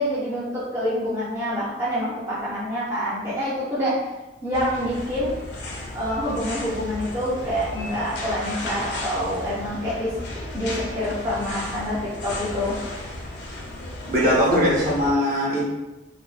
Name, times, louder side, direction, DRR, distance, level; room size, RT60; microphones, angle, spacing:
voice 1, 0.0-4.1 4.4-5.3 5.9-10.1 10.5-12.8, equal, 15° right, -9 dB, 0.4 m, -26 dB
sound 1, 4.5-15.1, left 1 dB, 60° left, 0.4 m, -34 dB
voice 2, 14.1-15.6, equal, 50° right, -5 dB, 0.7 m, -20 dB
2.5 x 2.2 x 2.3 m, 1.0 s
head